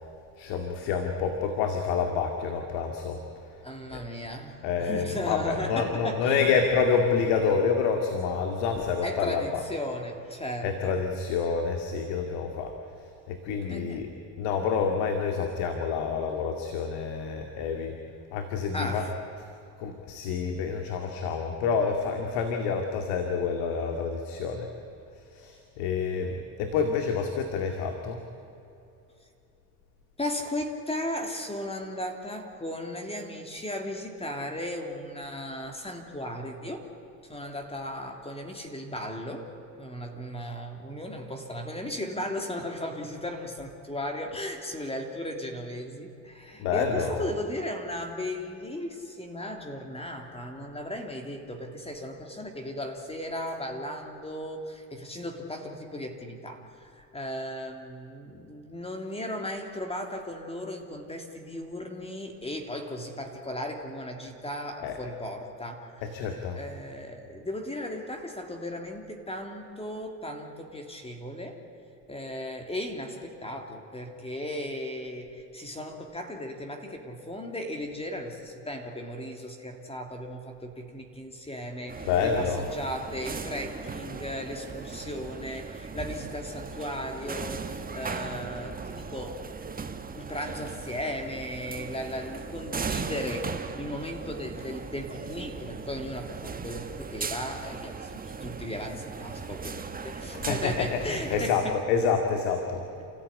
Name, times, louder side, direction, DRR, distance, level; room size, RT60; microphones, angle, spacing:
voice 1, 0.4-3.2 3.9-4.0 4.6-9.7 10.6-14.1 14.4-18.0 18.3-19.4 19.8-24.7 25.2-28.2 37.4-37.5 46.6-47.3 64.8-65.0 66.0-66.6 82.0-82.7 100.3-102.9, left 5 dB, 75° left, 4 dB, 2.3 m, -28 dB
voice 2, 3.6-6.6 9.0-11.0 13.7-14.1 18.7-19.1 30.2-36.9 37.3-66.0 66.5-71.6 72.1-89.4 90.1-101.8, left 1 dB, 15° left, 4 dB, 3.2 m, -36 dB
sound 1, 81.9-101.5, right 5 dB, 20° right, 1.4 m, -38 dB
28.5 x 14.5 x 9.9 m, 2.8 s
supercardioid pair, 90°, 41 cm